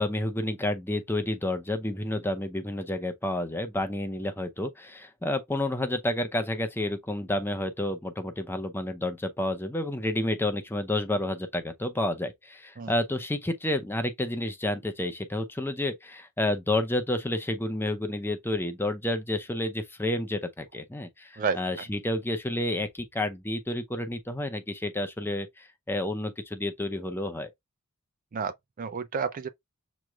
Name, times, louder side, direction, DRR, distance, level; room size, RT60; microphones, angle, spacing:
voice 1, 0.0-27.5, left 1 dB, 10° left, 0.6 m, -30 dB
voice 2, 28.3-29.5, right 5 dB, 35° right, 0.4 m, -30 dB
7.3 x 3.1 x 2.3 m
head